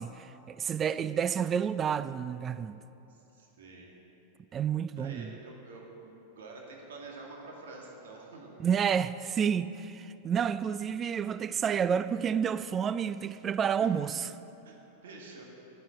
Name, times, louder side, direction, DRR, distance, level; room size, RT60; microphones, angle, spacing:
voice 1, 0.0-2.8 4.5-5.3 8.6-14.2, right 7 dB, 25° right, 0.4 m, -30 dB
voice 2, 3.1-4.0 5.0-8.6 13.6-13.9 14.6-15.4, right 3 dB, 60° right, 2.1 m, -48 dB
10.5 x 9.6 x 8.6 m
figure-of-eight pair, 90°, 0 cm